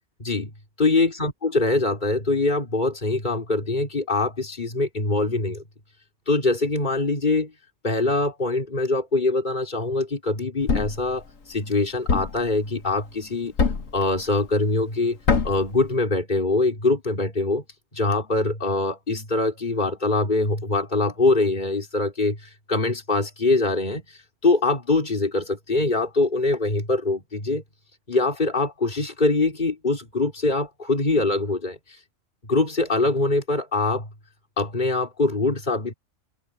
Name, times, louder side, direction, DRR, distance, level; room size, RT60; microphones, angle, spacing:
voice 1, 0.2-0.5 0.8-5.6 6.3-7.5 7.8-13.5 13.9-15.2 15.4-17.6 17.9-27.6 28.1-31.8 32.5-34.1 34.6-35.9, left 2 dB, 35° left, 4.0 m, -23 dB
Thump thud, 10.7-11.1 12.1-12.5 13.6-14.0 15.3-15.7, left 4 dB, 85° left, 2.0 m, -22 dB
open air
omnidirectional pair, 1.3 m